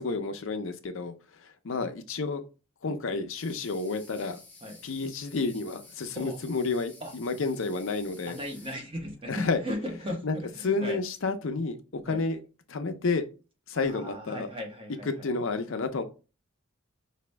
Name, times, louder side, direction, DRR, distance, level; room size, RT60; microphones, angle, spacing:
voice 1, 0.0-2.4 2.8-4.4 4.8-8.4 9.3-9.6 10.2-10.4 10.6-12.4 12.7-13.2 13.7-14.5 15.2-16.0, left 3 dB, 65° left, 0.6 m, -30 dB
sound 1, 3.3-8.7, left 3 dB, 10° left, 0.9 m, -52 dB
voice 2, 8.3-11.0 12.1-12.2 13.7-15.3, left 1 dB, 25° right, 1.0 m, -37 dB
5.0 x 2.7 x 3.3 m
head